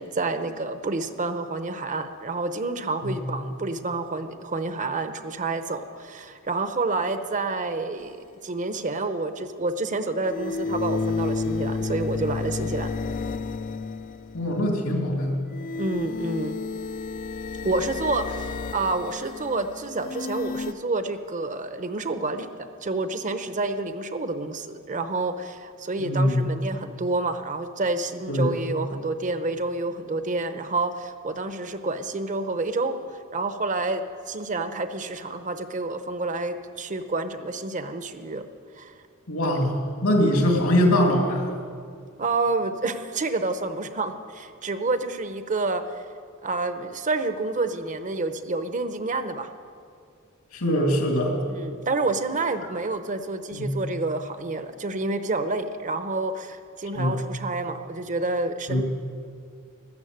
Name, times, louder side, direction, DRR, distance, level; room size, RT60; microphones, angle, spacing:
voice 1, 0.0-8.2 8.4-12.9 15.8-16.6 17.6-33.0 33.3-38.4 38.8-38.9 40.3-40.4 42.2-45.8 46.4-49.5 51.5-58.8, right 3 dB, 35° right, 9 dB, 0.8 m, -29 dB
sound 1, 8.0-8.1 10.2-14.6 15.5-20.7, left 4 dB, 35° left, 0.5 m, -31 dB
voice 2, 14.3-15.4 26.0-26.5 28.3-28.6 39.3-41.5 50.5-51.4 53.5-53.7 56.9-57.1 58.7-58.8, equal, 75° left, 2 dB, 2.6 m, -22 dB
14.0 x 12.5 x 7.9 m, 2.3 s
head